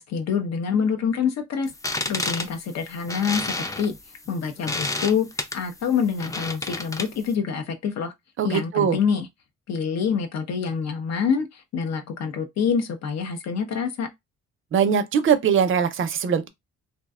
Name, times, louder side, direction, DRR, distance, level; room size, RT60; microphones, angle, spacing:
voice 1, 0.0-1.7 2.1-3.9 4.3-5.3 5.5-8.1 8.4-9.3 9.7-14.1, left 6 dB, 60° left, 0.6 m, -26 dB
sound 1, 1.7-7.3, left 2 dB, 10° left, 0.4 m, -31 dB
voice 2, 8.4-9.0 14.7-16.5, right 7 dB, 45° right, 0.5 m, -21 dB
2.6 x 2.1 x 2.3 m
cardioid pair, 90°, 30 cm